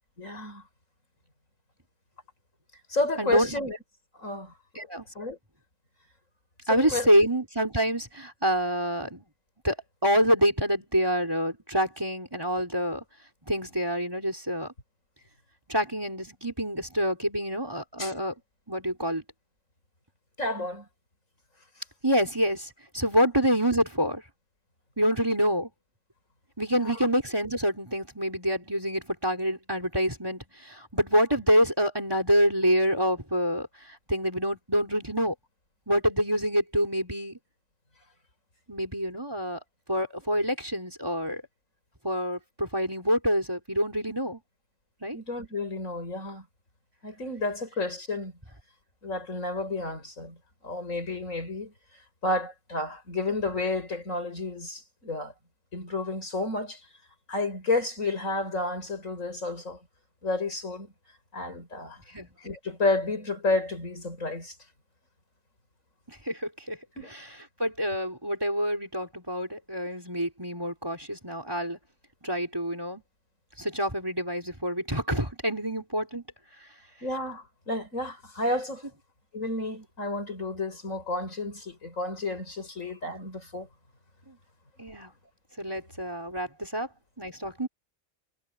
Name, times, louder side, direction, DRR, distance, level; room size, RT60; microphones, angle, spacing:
voice 1, 0.2-0.6 2.9-3.8 4.2-4.5 5.1-5.4 6.7-7.1 18.0-18.1 20.4-20.9 26.7-27.0 45.1-46.4 47.0-48.3 49.0-50.4 50.6-51.7 52.2-55.3 55.7-56.8 57.3-59.8 60.2-60.9 61.3-62.0 62.4-64.5 67.0-67.1 77.0-78.8 79.3-83.7, left 2 dB, 75° left, 6.3 m, -31 dB
voice 2, 4.7-5.1 6.7-9.2 9.6-9.8 10.0-13.0 13.5-14.7 15.7-18.3 18.7-19.2 22.0-24.2 25.0-25.7 26.6-33.7 34.1-35.3 35.9-37.4 38.7-39.6 39.9-41.4 42.0-44.4 45.0-45.2 62.1-62.3 66.1-66.8 67.6-71.8 72.2-73.0 73.6-76.2 84.3-84.4 84.8-85.1 85.6-86.9 87.2-87.7, equal, 15° right, 4.7 m, -26 dB
omnidirectional pair, 1.4 m